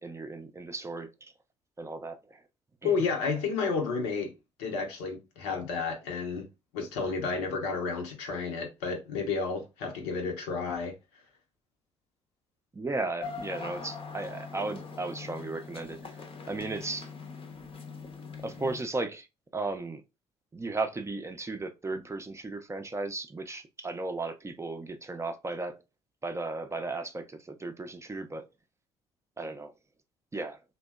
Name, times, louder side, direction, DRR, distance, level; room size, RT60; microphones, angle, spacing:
voice 1, 0.0-1.3 1.8-2.4 2.8-2.9 12.7-17.1 18.4-19.3 19.5-20.0 20.5-25.8 26.2-28.4 29.4-29.7 30.3-30.6, right 3 dB, 20° right, 0.5 m, -35 dB
voice 2, 2.8-4.3 4.6-6.5 6.7-10.9, left 4 dB, 80° left, 0.7 m, -31 dB
sound 1, 13.2-18.8, left 5 dB, 40° left, 0.6 m, -42 dB
2.7 x 2.2 x 2.2 m
hypercardioid pair, 50°, 15 cm